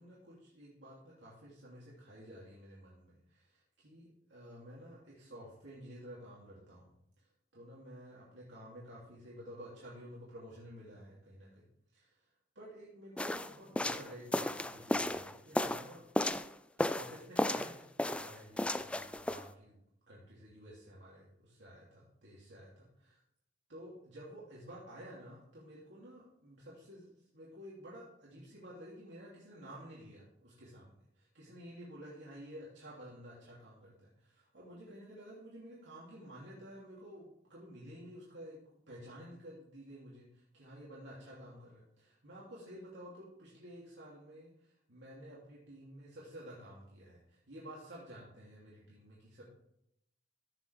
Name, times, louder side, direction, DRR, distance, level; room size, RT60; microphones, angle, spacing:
voice 1, 0.0-11.6 11.9-12.3 12.5-16.0 16.9-17.7 18.0-19.8 20.1-23.2 23.7-38.6 38.9-49.4, equal, 75° right, -7 dB, 3.0 m, -52 dB
sound 1, 13.2-16.5 16.8-17.7 18.0-19.4, left 1 dB, 5° left, 0.3 m, -34 dB
15.0 x 7.1 x 3.5 m, 0.80 s
head